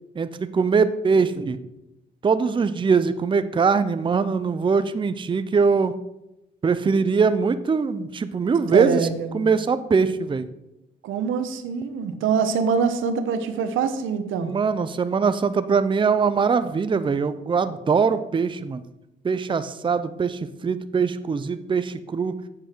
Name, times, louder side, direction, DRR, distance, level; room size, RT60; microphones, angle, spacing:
voice 1, 0.2-1.6 2.2-5.9 6.6-9.0 9.3-10.5 14.4-18.8 19.2-22.4, right 5 dB, 25° right, 12 dB, 0.6 m, -22 dB
voice 2, 8.7-9.4 11.0-14.5, right 6 dB, 85° right, 10 dB, 1.0 m, -24 dB
9.7 x 7.9 x 4.5 m, 0.91 s
cardioid pair, 90°, 20 cm